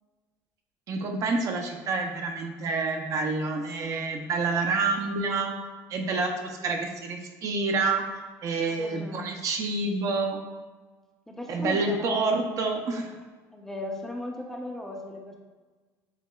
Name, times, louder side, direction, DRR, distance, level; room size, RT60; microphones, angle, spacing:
voice 1, 0.9-5.5 5.9-10.4 11.5-13.2, right 3 dB, 45° right, 3 dB, 0.6 m, -28 dB
voice 2, 8.7-9.3 11.3-12.3 13.5-15.4, left 1 dB, 5° left, 0 dB, 0.6 m, -36 dB
7.2 x 2.8 x 2.3 m, 1.3 s
cardioid pair, 120°, 8 cm